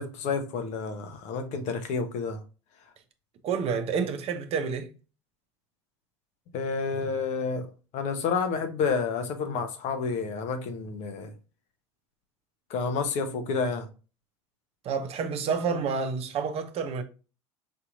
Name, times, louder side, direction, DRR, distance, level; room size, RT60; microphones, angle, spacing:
voice 1, 0.0-2.4 6.5-7.7 7.9-11.3 12.7-13.9, left 5 dB, 55° left, 1.0 m, -30 dB
voice 2, 3.4-4.9 14.8-17.0, right 5 dB, 45° right, 0.8 m, -29 dB
5.3 x 2.9 x 2.5 m
hypercardioid pair, 75°, 15 cm